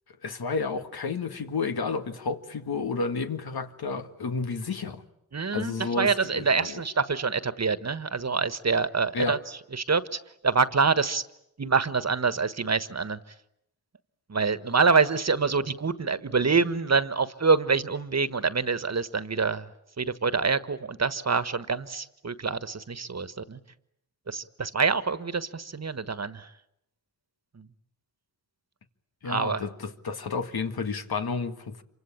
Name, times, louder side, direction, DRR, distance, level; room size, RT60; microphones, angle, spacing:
voice 1, 0.2-5.0 5.5-6.8 9.1-9.4 29.2-31.8, left 4 dB, 80° left, 1.9 m, -31 dB
voice 2, 5.3-9.4 9.7-11.2 11.6-13.2 14.3-19.7 20.0-23.6 24.3-26.5 27.5-27.7 29.2-29.6, right 4 dB, 45° right, 1.4 m, -26 dB
27.0 x 25.0 x 8.7 m
wide cardioid pair, 65°, 37 cm